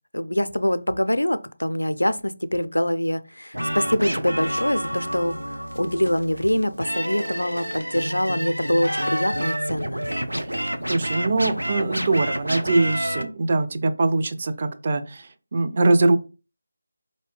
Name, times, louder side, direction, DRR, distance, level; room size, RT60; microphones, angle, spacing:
voice 1, 0.1-5.4 5.7-10.1, equal, 80° left, 0.4 m, -24 dB
sound 1, 3.5-13.2, equal, 80° right, 0.6 m, -29 dB
voice 2, 10.9-16.2, right 2 dB, 35° right, 0.4 m, -22 dB
4.6 x 2.7 x 3.3 m
figure-of-eight pair, 160°, 0 cm